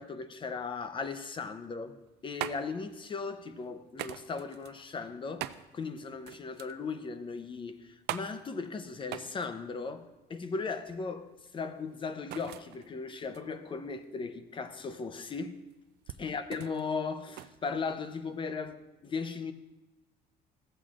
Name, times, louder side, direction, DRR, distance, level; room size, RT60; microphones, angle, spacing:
voice 1, 0.0-2.0 2.2-15.6 16.2-19.5, left 4 dB, 30° left, 0.6 m, -37 dB
sound 1, 1.9-18.4, right 14 dB, 75° right, 0.4 m, -45 dB
14.5 x 7.7 x 2.5 m
cardioid pair, 110°, 17 cm